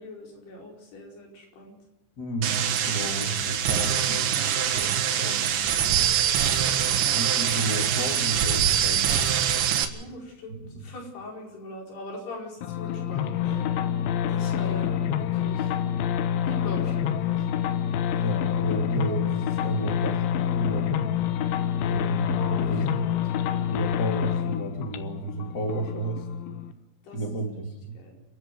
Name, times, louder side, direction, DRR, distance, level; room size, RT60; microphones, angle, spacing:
voice 1, 0.0-1.8 5.9-6.9 9.9-13.7 13.9-15.7 16.4-17.5 21.8-23.5 27.0-27.2 27.9-28.1, left 2 dB, 60° left, -1 dB, 6.8 m, -42 dB
voice 2, 2.2-5.6 6.7-9.2 10.5-10.8 14.9-15.0 18.1-21.1 21.9-23.0 23.7-26.3 27.1-27.9, right 2 dB, 25° left, 2 dB, 2.7 m, -32 dB
sound 1, 2.4-9.9, right 9 dB, 75° right, 4.0 m, -24 dB
sound 2, 12.6-26.7, left 9 dB, 85° left, 3.5 m, -27 dB
30.0 x 10.5 x 9.3 m, 0.87 s
omnidirectional pair, 5.3 m